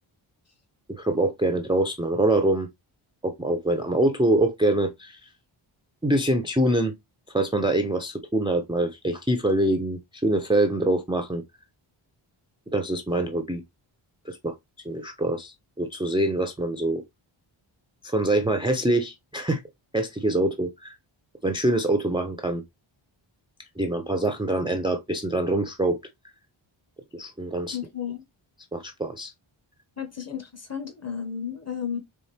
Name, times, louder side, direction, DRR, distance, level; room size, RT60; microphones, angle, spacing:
voice 1, 0.9-2.7 3.2-5.3 6.0-6.9 7.3-11.4 12.7-13.6 14.3-14.6 14.8-17.0 18.0-19.6 19.9-20.9 21.4-22.6 23.8-26.0 27.1-27.8 28.7-29.3, right 1 dB, 10° right, 0.4 m, -24 dB
voice 2, 27.7-28.2 30.0-32.0, left 8 dB, 30° left, 1.0 m, -33 dB
4.3 x 3.4 x 3.2 m
wide cardioid pair, 160°, 49 cm